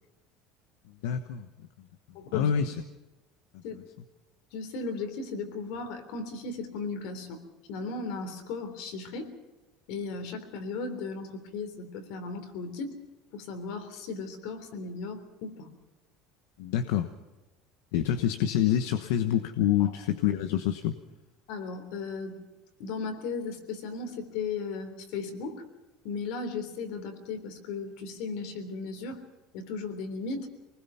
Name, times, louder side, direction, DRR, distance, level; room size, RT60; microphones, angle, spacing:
voice 1, 0.9-1.9 2.3-2.7 3.5-3.8 16.6-17.1 17.9-21.0, left 10 dB, 85° left, 8 dB, 1.2 m, -27 dB
voice 2, 2.1-2.5 3.6-3.8 4.5-7.4 7.7-9.3 9.9-12.9 13.3-15.7 19.8-19.9 21.5-22.4 22.8-25.6 26.0-29.2 29.5-30.5, left 4 dB, 65° left, 8 dB, 3.4 m, -36 dB
24.0 x 20.5 x 5.8 m, 1.1 s
cardioid pair, 155°, 0 cm